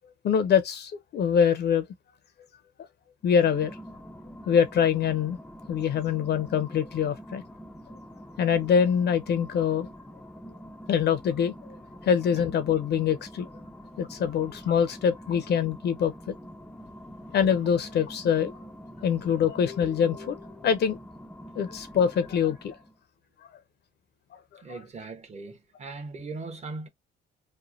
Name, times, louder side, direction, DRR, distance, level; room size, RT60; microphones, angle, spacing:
voice 1, 0.2-1.8 3.2-3.7 4.5-5.4 5.7-7.4 8.4-9.9 10.9-11.5 12.0-13.5 14.0-16.4 17.3-18.5 19.0-21.0 21.6-22.8 24.3-24.4 24.7-24.8, left 7 dB, 55° left, 0.5 m, -24 dB
sound 1, 3.2-23.0, equal, 5° left, 0.4 m, -45 dB
voice 2, 24.6-26.9, right 3 dB, 35° right, 0.9 m, -39 dB
3.1 x 2.1 x 2.4 m
cardioid pair, 90°, 20 cm